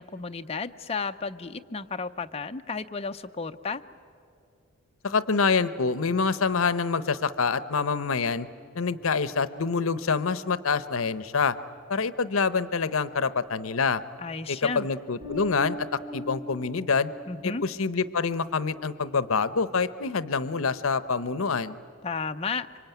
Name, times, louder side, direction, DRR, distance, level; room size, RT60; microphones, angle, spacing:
voice 1, 0.0-3.8 14.2-14.9 17.3-17.6 22.0-22.7, left 4 dB, 30° left, 6 dB, 0.6 m, -33 dB
voice 2, 5.0-8.5 8.7-11.6 11.9-14.0 14.5-17.1 17.4-21.8, left 5 dB, 75° left, 15 dB, 0.8 m, -26 dB
Bass guitar, 15.2-17.6, equal, 25° right, 6.3 m, -39 dB
26.0 x 24.5 x 9.3 m, 2.5 s
head